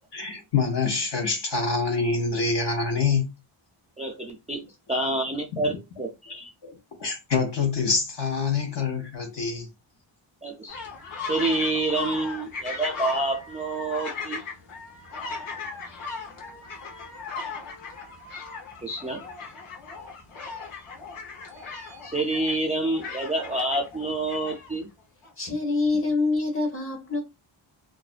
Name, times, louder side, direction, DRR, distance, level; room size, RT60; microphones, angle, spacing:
voice 1, 0.1-3.3 5.7-6.0 6.3-9.7, left 4 dB, 55° left, 0.8 m, -26 dB
voice 2, 4.0-4.6 4.9-6.5 10.4-10.8 11.3-14.4 18.8-19.2 21.7-24.9, right 2 dB, 15° right, 0.3 m, -28 dB
sound 1, 10.7-24.7 25.2-25.3, left 4 dB, 85° left, 1.0 m, -37 dB
voice 3, 25.4-27.2, left 3 dB, 25° left, 0.9 m, -25 dB
2.4 x 2.1 x 2.4 m
wide cardioid pair, 105°, 49 cm